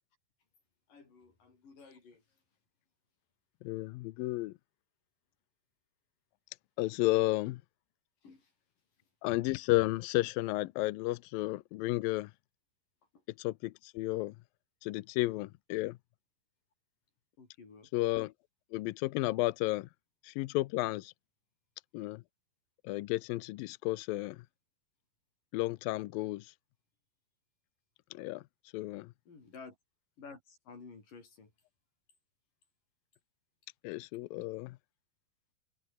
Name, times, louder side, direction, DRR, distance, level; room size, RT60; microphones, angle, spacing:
voice 1, 0.9-2.2 8.2-8.5 17.4-17.9 29.3-29.7 30.2-31.5, left 4 dB, 55° left, 7.8 m, -52 dB
voice 2, 3.6-4.5 6.8-7.6 9.2-12.3 13.4-14.3 14.8-16.0 17.9-18.3 18.7-19.9 20.2-21.1 21.9-22.2 22.8-24.4 25.5-26.5 28.1-28.4 28.7-29.1 33.8-34.8, left 19 dB, 80° left, 2.1 m, -32 dB
omnidirectional pair, 4.7 m